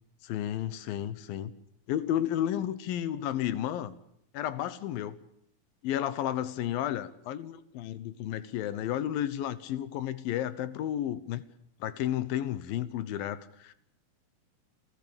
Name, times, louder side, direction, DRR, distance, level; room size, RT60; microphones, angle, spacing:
voice 1, 0.2-1.5 1.9-3.9 4.3-5.2 5.8-11.4 11.8-13.7, left 11 dB, 85° left, 15 dB, 2.9 m, -32 dB
29.5 x 13.5 x 8.7 m, 0.74 s
omnidirectional pair, 4.1 m